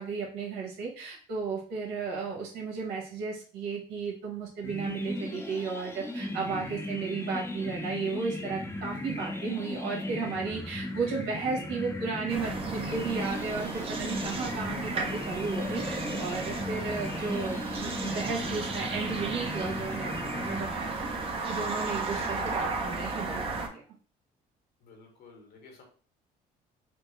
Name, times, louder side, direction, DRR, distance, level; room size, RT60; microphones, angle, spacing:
voice 1, 0.0-21.1 21.5-23.8, right 5 dB, 90° right, -1 dB, 1.3 m, -34 dB
sound 1, 4.6-21.2, left 1 dB, 15° left, 0.6 m, -37 dB
sound 2, 12.3-23.7, right 3 dB, 35° right, 0.7 m, -34 dB
voice 2, 24.8-25.8, left 4 dB, 65° left, 2 dB, 1.3 m, -53 dB
4.3 x 2.0 x 3.2 m, 0.41 s
cardioid pair, 110°, 17 cm